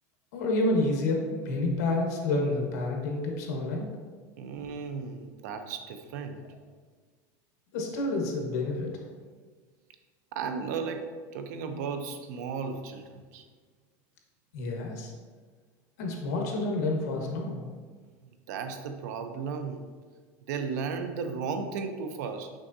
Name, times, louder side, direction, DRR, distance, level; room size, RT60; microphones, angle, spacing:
voice 1, 0.3-3.9 7.7-8.9 14.5-15.1 16.0-17.7, left 2 dB, 90° left, 1 dB, 1.4 m, -29 dB
voice 2, 4.4-6.4 10.3-13.4 18.5-19.9 20.5-22.5, right 5 dB, 90° right, 7 dB, 0.7 m, -35 dB
6.3 x 6.0 x 2.7 m, 1.5 s
cardioid pair, 160°, 9 cm